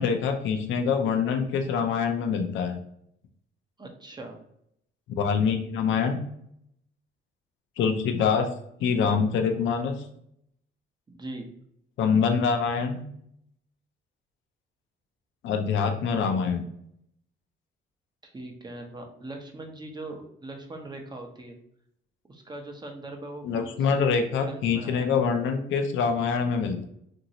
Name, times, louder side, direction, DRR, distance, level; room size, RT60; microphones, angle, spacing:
voice 1, 0.0-2.8 5.1-6.2 7.8-8.5 8.8-10.0 12.0-13.0 15.4-16.6 23.4-26.8, left 6 dB, 75° left, 5 dB, 0.5 m, -25 dB
voice 2, 3.8-4.4 11.1-11.5 18.2-21.6 22.3-24.1 24.4-25.1, right 2 dB, 20° right, 3 dB, 0.7 m, -41 dB
2.9 x 2.6 x 2.7 m, 0.72 s
cardioid pair, 90°, 20 cm